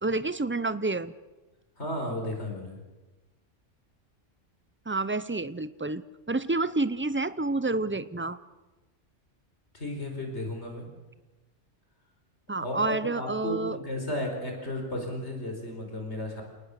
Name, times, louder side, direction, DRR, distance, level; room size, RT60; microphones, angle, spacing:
voice 1, 0.0-1.1 4.9-8.4 12.5-13.8, right 2 dB, 15° right, 14 dB, 0.5 m, -29 dB
voice 2, 1.8-2.8 9.7-10.9 12.6-16.4, left 1 dB, 60° left, 2 dB, 5.0 m, -34 dB
29.0 x 19.0 x 6.7 m, 1.1 s
omnidirectional pair, 1.3 m